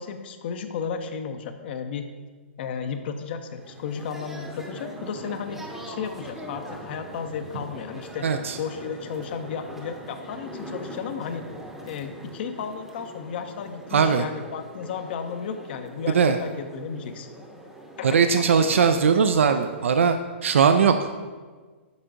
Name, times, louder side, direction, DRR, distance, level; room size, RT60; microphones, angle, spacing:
voice 1, 0.0-2.0 2.6-8.2 8.6-11.5 11.8-17.3 18.0-18.9, left 6 dB, 55° left, 7 dB, 0.5 m, -34 dB
sound 1, 3.5-20.0, equal, 5° right, 0.7 m, -42 dB
voice 2, 8.2-8.6 13.9-14.2 16.1-16.4 18.0-21.1, right 6 dB, 80° right, 8 dB, 0.3 m, -20 dB
8.0 x 4.5 x 2.6 m, 1.4 s
hypercardioid pair, 130°, 7 cm